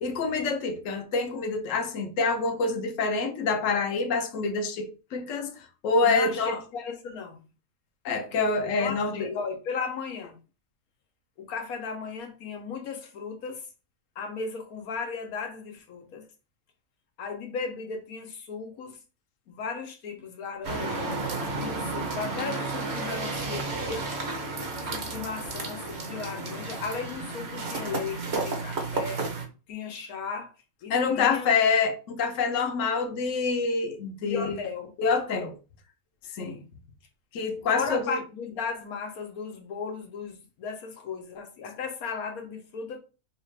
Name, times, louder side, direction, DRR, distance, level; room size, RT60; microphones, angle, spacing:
voice 1, 0.0-6.6 8.0-9.3 30.9-34.6 35.0-35.5 36.3-36.6 37.3-38.2, left 4 dB, 65° left, 1.0 m, -26 dB
voice 2, 6.0-7.5 8.6-10.4 11.4-13.6 14.2-16.3 17.2-19.0 19.5-21.1 21.6-24.1 24.9-29.2 29.7-30.5 30.8-31.6 34.2-34.9 36.4-36.6 37.7-43.0, left 5 dB, 85° left, 1.3 m, -36 dB
sound 1, 20.6-29.5, right 3 dB, 50° right, 1.2 m, -32 dB
5.3 x 2.4 x 3.2 m
omnidirectional pair, 1.5 m